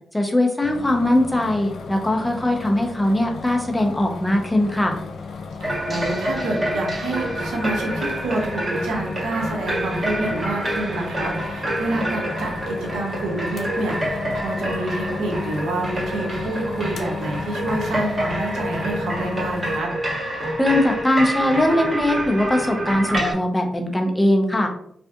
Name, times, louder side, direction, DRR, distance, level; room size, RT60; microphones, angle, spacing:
voice 1, 0.1-5.0 20.6-24.7, left 1 dB, 15° left, 3 dB, 0.6 m, -20 dB
sound 1, 0.6-19.8, left 5 dB, 75° left, 0.3 m, -35 dB
sound 2, 5.6-23.3, right 1 dB, 30° right, 1.2 m, -27 dB
voice 2, 5.6-19.9, right 2 dB, 90° right, 0 dB, 0.6 m, -28 dB
2.6 x 2.4 x 2.2 m, 0.69 s
supercardioid pair, 50°, 0 cm